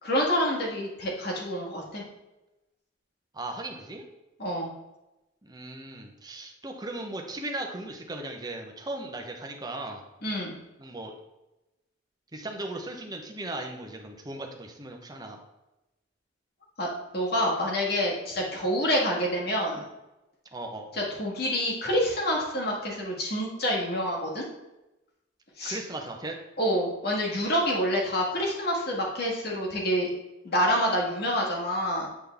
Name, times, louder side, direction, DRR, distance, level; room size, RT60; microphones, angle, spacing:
voice 1, 0.0-2.0 4.4-4.7 10.2-10.6 16.8-19.9 21.2-24.4 25.6-25.8 26.6-30.1 30.4-32.1, equal, 55° left, -2 dB, 1.6 m, -27 dB
voice 2, 3.3-4.1 5.4-10.0 10.8-11.1 12.3-15.4 20.5-21.1 25.6-26.3, right 2 dB, 20° right, 2 dB, 0.8 m, -37 dB
8.2 x 3.8 x 3.5 m, 0.98 s
head